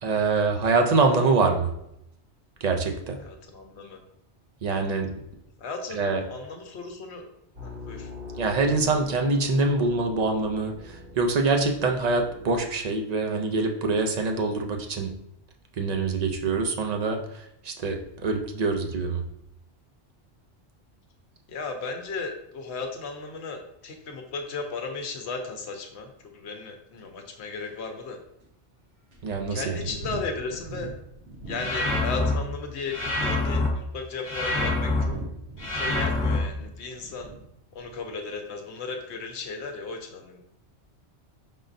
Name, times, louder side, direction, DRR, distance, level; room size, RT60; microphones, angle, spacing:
voice 1, 0.0-1.7 2.6-3.2 4.6-5.1 5.9-6.2 8.4-15.1 15.8-17.2 17.6-19.2 29.2-29.8, right 3 dB, 45° right, 3 dB, 0.5 m, -24 dB
voice 2, 3.2-4.0 5.6-7.3 7.6-8.1 21.5-28.2 29.5-30.9 31.5-35.1 35.7-37.3 37.7-40.6, left 4 dB, 70° left, 4 dB, 1.0 m, -35 dB
sound 1, 7.6-12.6, left 2 dB, 85° right, 1.9 m, -42 dB
sound 2, 27.0-27.1 27.7-27.8 28.4-28.5 29.1-32.5 32.8-33.3 34.0-37.4 37.7-38.1, right 2 dB, 65° right, 1.3 m, -41 dB
sound 3, 31.5-32.3 32.9-33.7 34.2-35.0 35.6-36.4, left 2 dB, 40° left, 1.2 m, -26 dB
5.0 x 3.8 x 2.6 m, 0.79 s
omnidirectional pair, 1.2 m